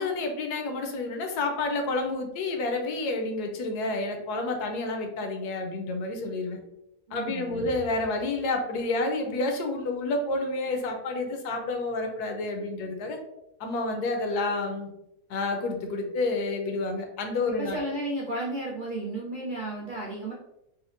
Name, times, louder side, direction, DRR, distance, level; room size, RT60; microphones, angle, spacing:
voice 1, 0.0-6.6 7.1-13.2 13.6-14.9 15.3-17.8, left 2 dB, 75° left, 4 dB, 1.1 m, -29 dB
voice 2, 7.1-7.7 17.5-20.3, right 1 dB, 90° right, -5 dB, 0.4 m, -33 dB
4.2 x 2.1 x 2.5 m, 0.87 s
omnidirectional pair, 1.7 m